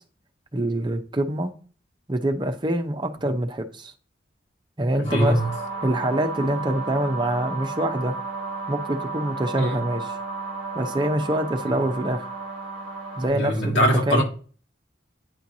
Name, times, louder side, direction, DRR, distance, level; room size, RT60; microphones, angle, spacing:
voice 1, 0.5-1.5 2.1-3.9 4.8-5.4 5.8-8.1 8.7-10.1 10.7-12.3 13.2-14.2, right 1 dB, 25° right, 0.7 m, -25 dB
voice 2, 5.0-5.5 9.6-9.8 11.7-11.8 13.3-14.2, equal, 75° left, 1.9 m, -22 dB
sound 1, 5.0-13.3, right 3 dB, 55° left, 3.8 m, -33 dB
9.5 x 4.5 x 2.7 m
head